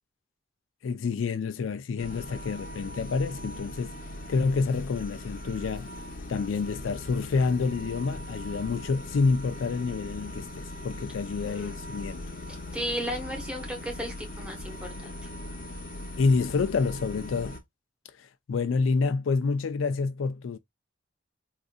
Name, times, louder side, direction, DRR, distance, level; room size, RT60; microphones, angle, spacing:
voice 1, 0.8-3.9 4.3-5.9 6.3-12.2 16.2-17.6 18.2-20.6, left 4 dB, 80° left, 0.4 m, -28 dB
sound 1, 2.0-17.6, left 1 dB, 45° left, 0.7 m, -40 dB
voice 2, 11.5-11.8 12.7-15.1, equal, 5° right, 1.0 m, -35 dB
3.7 x 2.5 x 2.4 m
head